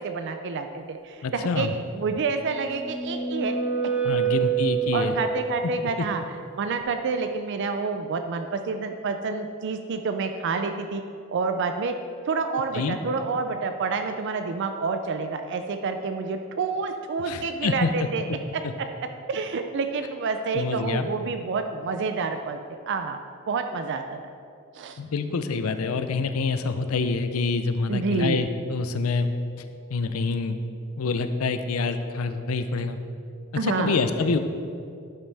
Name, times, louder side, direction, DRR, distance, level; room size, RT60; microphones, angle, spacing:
voice 1, 0.0-1.7 1.9-3.6 4.2-4.3 4.9-11.0 11.3-12.0 12.3-18.9 19.3-23.2 23.5-24.2 24.7-25.0 27.9-28.4 33.6-34.0, right 4 dB, 55° right, 7 dB, 0.4 m, -28 dB
voice 2, 1.2-1.7 4.0-5.2 6.0-6.1 12.7-13.0 17.3-17.9 20.5-21.1 25.0-29.3 29.9-30.6 31.0-33.0 33.6-34.4, left 4 dB, 90° left, 10 dB, 0.5 m, -26 dB
sound 1, 2.3-5.4, right 7 dB, 10° right, 1.0 m, -27 dB
11.5 x 5.9 x 3.4 m, 2.5 s
head